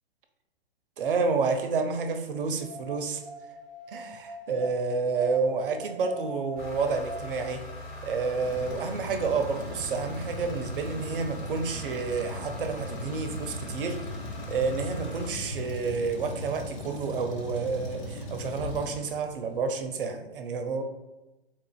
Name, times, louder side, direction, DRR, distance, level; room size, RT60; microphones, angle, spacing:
voice 1, 1.0-3.2 3.9-7.6 8.0-14.0 14.5-20.8, right 4 dB, 60° right, 6 dB, 0.5 m, -29 dB
sound 1, 2.6-4.7 5.1-7.4, equal, ahead, 0.7 m, -42 dB
sound 2, 6.6-15.3, left 1 dB, 50° left, 1.3 m, -41 dB
Truck, 8.4-19.6, left 1 dB, 30° left, 0.5 m, -39 dB
3.7 x 2.4 x 2.3 m, 1.0 s
figure-of-eight pair, 115°, 31 cm